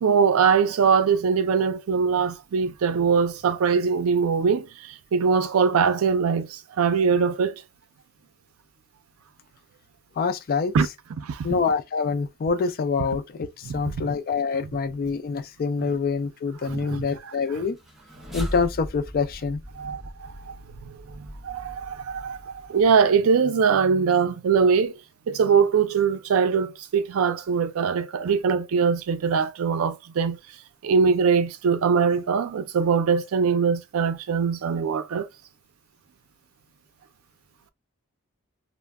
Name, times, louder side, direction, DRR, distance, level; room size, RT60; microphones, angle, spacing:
voice 1, 0.0-7.6 10.7-10.9 11.2-11.5 13.6-14.1 16.6-17.3 19.8-20.6 20.9-24.9 25.3-30.4 30.8-35.3, right 6 dB, 75° right, 0.4 m, -22 dB
voice 2, 10.2-10.7 11.4-17.8 18.3-19.6, left 5 dB, 45° left, 0.4 m, -26 dB
sound 1, 17.7-23.0, equal, ahead, 0.6 m, -39 dB
2.2 x 2.0 x 3.4 m
head